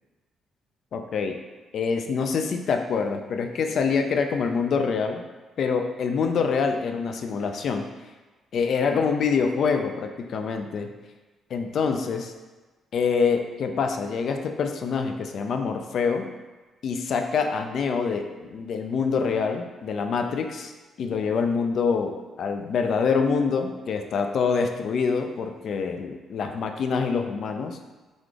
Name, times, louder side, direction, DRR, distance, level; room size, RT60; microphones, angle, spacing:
voice 1, 0.9-1.4 1.7-5.3 5.6-7.9 8.5-10.9 11.5-12.3 12.9-16.3 16.8-20.7 21.0-27.8, left 5 dB, 65° left, 5 dB, 0.3 m, -25 dB
3.9 x 2.3 x 3.2 m, 1.3 s
cardioid pair, 90°, 0 cm